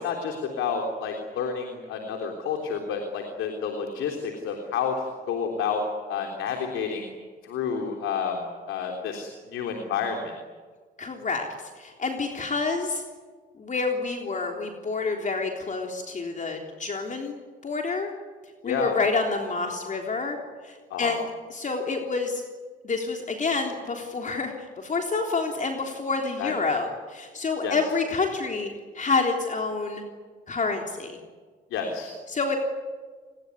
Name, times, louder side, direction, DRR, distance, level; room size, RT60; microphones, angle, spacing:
voice 1, 0.0-4.9 5.3-5.8 6.1-7.1 7.4-8.4 8.7-10.3 18.6-19.0 20.9-21.1 26.4-26.6 27.6-27.8 31.7-32.1, left 6 dB, 90° left, 3 dB, 3.7 m, -30 dB
voice 2, 11.0-11.5 11.8-13.0 13.6-18.1 18.6-21.3 21.5-22.4 22.8-30.0 30.5-31.2 32.3-32.6, left 4 dB, 40° left, 2 dB, 3.6 m, -28 dB
28.5 x 21.5 x 9.6 m, 1.5 s
cardioid pair, 90°, 20 cm